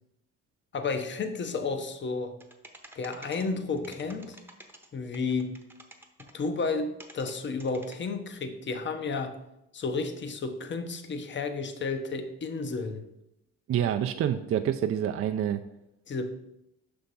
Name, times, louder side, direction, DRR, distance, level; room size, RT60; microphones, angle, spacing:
voice 1, 0.7-2.4 2.9-4.4 4.9-5.5 6.3-9.4 9.7-13.1 16.1-16.3, left 4 dB, 40° left, 7 dB, 0.7 m, -32 dB
sound 1, 2.4-3.5 3.8-4.9 5.1-6.3 7.0-7.3 7.6-7.9, right 1 dB, 5° right, 0.8 m, -49 dB
voice 2, 13.7-15.6, right 9 dB, 50° right, 6 dB, 0.4 m, -27 dB
5.6 x 3.5 x 5.3 m, 0.83 s
cardioid pair, 90°, 30 cm